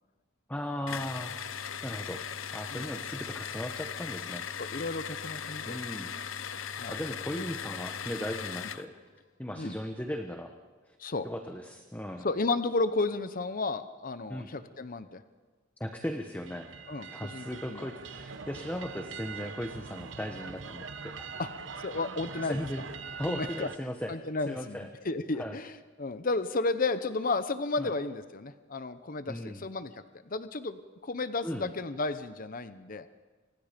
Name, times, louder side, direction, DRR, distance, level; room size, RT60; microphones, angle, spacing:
voice 1, 0.5-2.2 2.5-4.4 5.6-6.1 6.9-8.9 9.4-10.5 11.2-12.3 14.3-14.5 15.8-16.7 17.0-21.3 22.4-22.8 23.2-24.1 24.4-24.9 25.4-25.6 27.8-27.9 29.3-29.6 31.4-31.7, equal, 10° left, 4 dB, 1.2 m, -37 dB
sound 1, 0.9-8.9, left 7 dB, 80° left, 0.9 m, -38 dB
voice 2, 4.6-5.8 6.7-6.9 7.4-7.5 9.6-9.8 11.0-11.3 12.2-15.2 16.9-17.9 21.4-22.6 23.3-23.7 24.1-33.1, left 3 dB, 45° left, 11 dB, 0.9 m, -33 dB
sound 2, 16.4-23.8, right 5 dB, 65° right, 1.1 m, -43 dB
29.5 x 25.0 x 5.2 m, 1.4 s
head